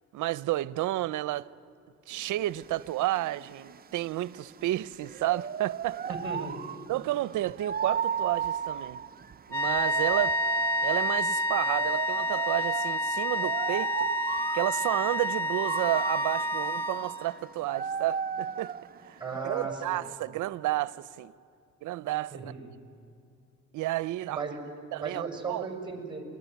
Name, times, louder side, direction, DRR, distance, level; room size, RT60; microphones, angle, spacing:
voice 1, 0.1-1.5 2.1-6.0 6.9-9.0 9.5-10.4 10.8-14.1 14.5-18.7 19.1-21.3 21.8-22.5 23.7-24.4 24.9-25.7, right 15 dB, 80° right, 0.6 m, -31 dB
sound 1, 2.1-20.2, right 7 dB, 30° right, 0.6 m, -36 dB
voice 2, 6.1-6.8 19.2-20.0 22.3-22.7 24.3-24.6 25.0-26.2, right 4 dB, 15° right, 6.0 m, -36 dB
sound 2, 9.5-17.4, equal, 10° left, 1.5 m, -29 dB
28.5 x 20.5 x 9.3 m
cardioid pair, 90°, 30 cm